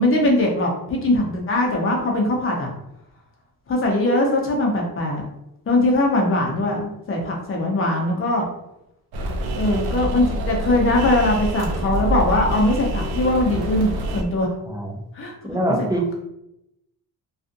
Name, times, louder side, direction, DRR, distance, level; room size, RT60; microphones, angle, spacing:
voice 1, 0.0-2.7 3.7-5.2 5.7-8.4 9.5-14.5 15.1-15.9, left 1 dB, 35° left, 0 dB, 0.7 m, -21 dB
sound 1, 9.1-14.2, right 1 dB, 75° right, 0.6 m, -26 dB
voice 2, 14.7-15.0 15.4-16.1, right 1 dB, 10° right, 0 dB, 0.4 m, -24 dB
2.5 x 2.4 x 2.5 m, 0.83 s
cardioid pair, 135°, 37 cm